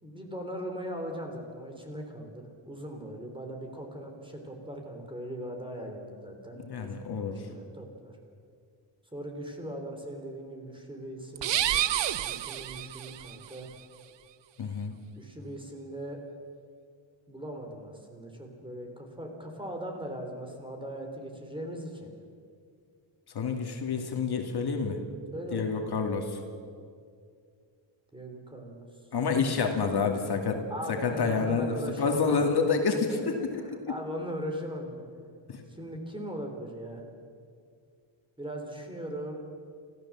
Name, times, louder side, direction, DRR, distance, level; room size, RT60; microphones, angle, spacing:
voice 1, 0.0-8.2 9.1-11.9 12.2-13.7 15.1-16.2 17.3-22.1 25.3-25.8 28.1-28.9 30.7-32.4 33.1-35.0 35.7-37.0 38.4-39.4, equal, 10° right, 3 dB, 3.6 m, -39 dB
voice 2, 6.7-7.4 14.6-14.9 23.3-25.0 25.5-26.4 29.1-30.6 30.9-33.5 33.9-34.0 35.5-35.6, left 5 dB, 55° left, 3 dB, 2.4 m, -28 dB
sound 1, 11.4-13.4, right 12 dB, 65° right, 0.8 m, -29 dB
28.0 x 15.0 x 7.4 m, 2.2 s
wide cardioid pair, 135°, 47 cm